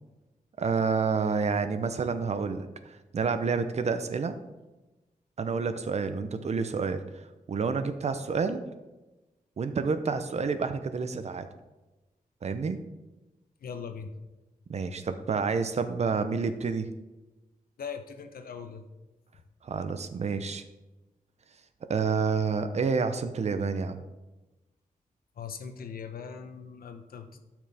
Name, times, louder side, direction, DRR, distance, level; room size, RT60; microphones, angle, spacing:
voice 1, 0.6-4.4 5.4-8.6 9.6-11.5 12.4-12.8 14.7-16.9 19.6-20.6 21.9-24.0, right 5 dB, 50° right, 10 dB, 0.7 m, -29 dB
voice 2, 13.6-14.1 17.8-18.8 25.4-27.4, left 6 dB, 85° left, 7 dB, 1.0 m, -40 dB
12.5 x 6.1 x 3.5 m, 1.1 s
wide cardioid pair, 170°, 15 cm